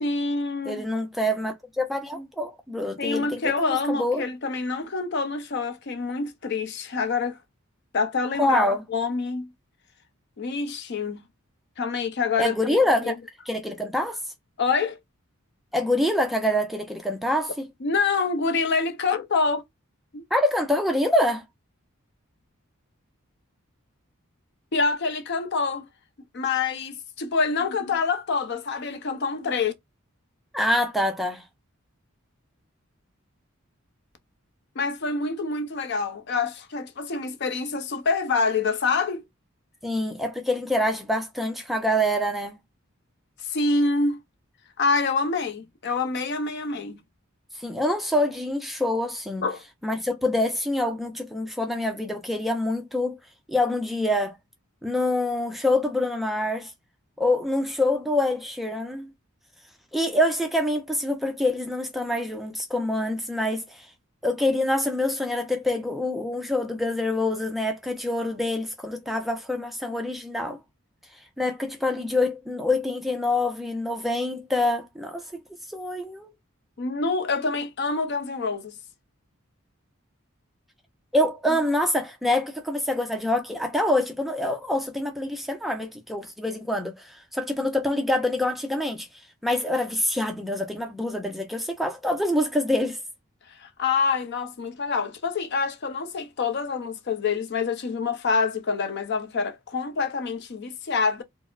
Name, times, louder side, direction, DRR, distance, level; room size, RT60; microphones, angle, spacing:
voice 1, 0.0-0.8 3.0-7.4 7.9-8.6 8.9-9.5 10.4-11.2 11.8-12.8 13.0-13.1 14.6-15.0 17.8-19.6 20.1-20.2 24.7-25.9 26.3-29.7 34.8-39.2 43.4-44.2 44.8-47.0 49.4-49.6 76.8-78.8 93.5-101.2, left 4 dB, 50° left, 0.5 m, -26 dB
voice 2, 0.6-4.2 8.4-8.8 12.4-13.2 13.5-14.2 15.7-17.7 20.3-21.4 30.5-31.4 39.8-42.6 47.6-49.4 49.8-53.2 53.5-54.4 54.8-56.7 57.2-59.1 59.9-63.9 64.2-70.6 71.4-75.4 75.7-76.3 81.1-89.1 89.4-93.0, left 1 dB, ahead, 0.4 m, -26 dB
4.2 x 2.0 x 2.3 m
head